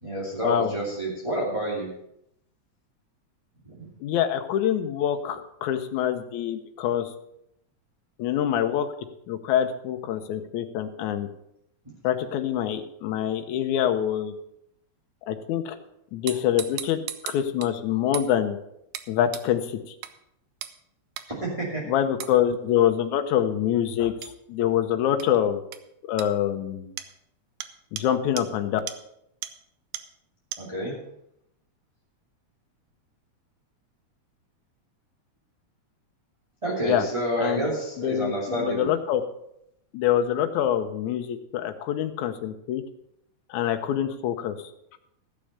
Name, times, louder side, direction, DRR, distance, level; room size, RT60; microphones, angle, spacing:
voice 1, 0.0-1.9 3.6-3.9 21.4-21.8 30.6-30.9 36.6-38.9, right 1 dB, 10° right, -5 dB, 2.4 m, -29 dB
voice 2, 4.0-7.1 8.2-8.9 9.3-11.3 12.0-14.3 15.3-15.8 16.1-17.0 17.2-18.6 19.1-19.6 21.9-25.6 26.1-26.9 27.9-28.8 36.9-37.0 37.4-37.7 38.0-39.2 39.9-42.8 43.5-44.6, left 10 dB, 75° left, 7 dB, 2.2 m, -25 dB
sound 1, 16.3-17.7 18.1-18.3 18.9-19.1 19.3-19.5 20.0-20.1 20.6-20.8 21.2-21.3 22.2-22.3 24.2-24.3 25.2-25.3 25.7-25.8 26.2-26.3 27.0-27.1 27.6-27.7 28.0-28.1 28.4-28.5 28.9-29.0 29.4-29.5 29.9-30.0 30.5-30.6, right 12 dB, 90° right, 2.3 m, -35 dB
14.0 x 6.8 x 6.6 m, 0.77 s
omnidirectional pair, 3.4 m